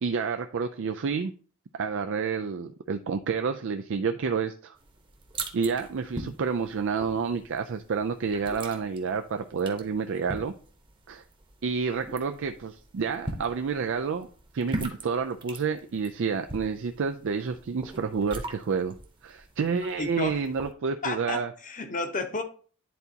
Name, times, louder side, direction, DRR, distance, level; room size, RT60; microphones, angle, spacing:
voice 1, 0.0-1.3 1.7-4.8 5.5-10.5 11.1-11.2 11.6-14.3 14.5-19.0 19.2-21.5, right 5 dB, 60° right, 7 dB, 0.4 m, -29 dB
sound 1, 4.8-20.7, right 2 dB, 25° right, 1.0 m, -42 dB
voice 2, 20.0-20.4 21.0-22.4, left 3 dB, 40° left, 7 dB, 0.9 m, -32 dB
10.5 x 4.0 x 2.8 m, 0.41 s
head